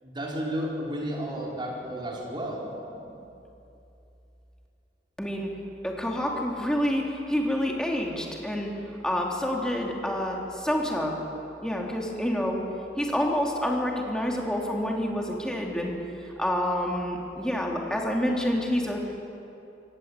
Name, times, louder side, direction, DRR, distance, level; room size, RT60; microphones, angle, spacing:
voice 1, 0.0-2.7, equal, 25° right, -3 dB, 4.7 m, -32 dB
voice 2, 5.2-5.5 5.8-8.7 9.0-11.2 11.6-12.6 13.0-19.2, equal, 5° left, -1 dB, 3.0 m, -28 dB
25.5 x 17.5 x 8.2 m, 2.8 s
head